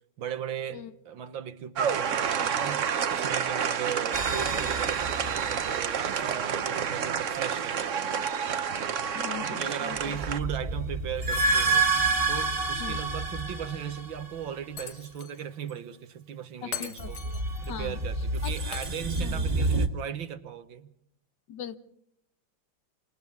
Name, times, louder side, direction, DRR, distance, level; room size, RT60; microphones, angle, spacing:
voice 1, 0.2-2.8 3.1-8.0 9.5-11.9 12.3-17.2 17.6-20.9, right 9 dB, 90° right, 2.1 m, -37 dB
sound 1, 1.8-10.4, right 7 dB, 50° right, 1.0 m, -29 dB
sound 2, 4.1-6.1 10.0-14.5 17.0-19.9, right 3 dB, 30° right, 1.7 m, -29 dB
voice 2, 9.1-10.2 12.8-13.0 16.6-17.4 17.7-18.0 18.4-18.8 19.2-19.5 21.5-21.8, left 9 dB, 70° left, 1.7 m, -40 dB
Shatter, 14.8-15.4 15.7-15.8 16.7-17.7 18.7-19.7, left 7 dB, 45° left, 1.3 m, -40 dB
30.0 x 24.5 x 3.6 m
omnidirectional pair, 2.1 m